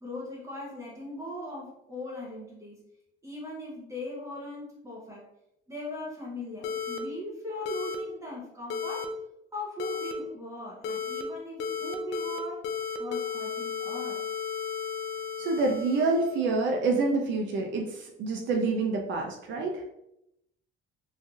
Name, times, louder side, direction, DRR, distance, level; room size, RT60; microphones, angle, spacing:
voice 1, 0.0-2.8 3.2-5.2 5.7-9.1 9.5-12.6 13.0-14.2, left 1 dB, 15° right, -4 dB, 0.8 m, -39 dB
sound 1, 6.6-7.0 7.6-7.9 8.7-9.0 9.8-10.1 10.8-11.2 11.6-12.4 12.6-16.4, left 6 dB, 80° left, 0.5 m, -34 dB
voice 2, 15.4-19.8, right 3 dB, 65° right, 2 dB, 0.5 m, -27 dB
3.2 x 2.6 x 2.3 m, 0.83 s
cardioid pair, 120°, 21 cm